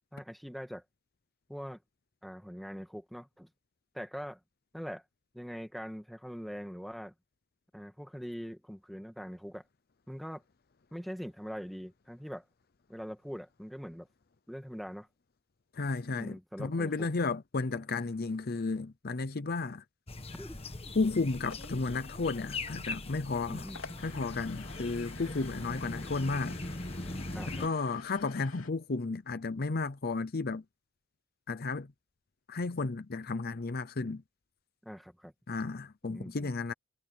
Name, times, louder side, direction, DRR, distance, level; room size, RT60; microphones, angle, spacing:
voice 1, 0.1-0.8 1.5-1.8 2.2-3.5 3.9-4.4 4.7-5.0 5.3-7.1 7.7-9.6 10.1-10.4 10.9-12.4 12.9-14.1 14.5-15.1 16.1-17.1 20.4-20.6 23.5-24.0 27.3-27.6 34.8-35.3 36.0-36.5, equal, ahead, 2.2 m, -42 dB
voice 2, 15.7-19.8 20.9-23.7 24.0-26.6 27.5-30.6 31.5-31.9 32.5-34.2 35.5-36.7, left 3 dB, 50° left, 0.7 m, -33 dB
sound 1, 20.1-27.7, left 2 dB, 30° left, 1.5 m, -41 dB
sound 2, 21.5-28.7, left 4 dB, 85° left, 3.3 m, -51 dB
head